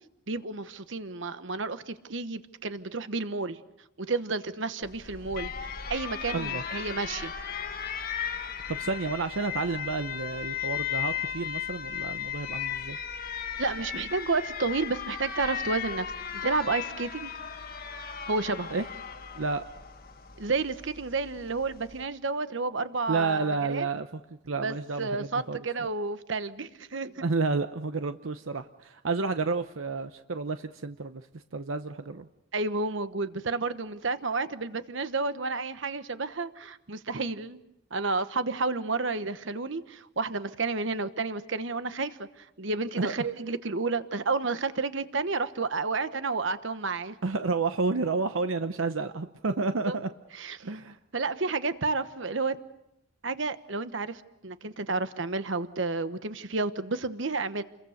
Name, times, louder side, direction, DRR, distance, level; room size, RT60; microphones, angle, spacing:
voice 1, 0.3-3.6 4.0-7.3 13.6-16.1 16.3-17.3 18.3-18.7 20.4-23.9 24.6-27.2 32.5-37.6 37.9-47.1 49.9-50.0 50.4-50.6 51.1-52.6 53.2-57.6, right 3 dB, 65° right, 11 dB, 1.2 m, -31 dB
Alarm, 4.8-22.0, left 8 dB, 50° left, 1.5 m, -36 dB
voice 2, 6.3-6.6 8.3-13.0 18.7-18.8 19.3-19.6 23.1-25.9 27.2-32.3 43.0-43.2 47.2-50.1 50.6-51.0, right 3 dB, 85° right, 9 dB, 0.8 m, -31 dB
29.5 x 22.0 x 6.6 m, 0.86 s
head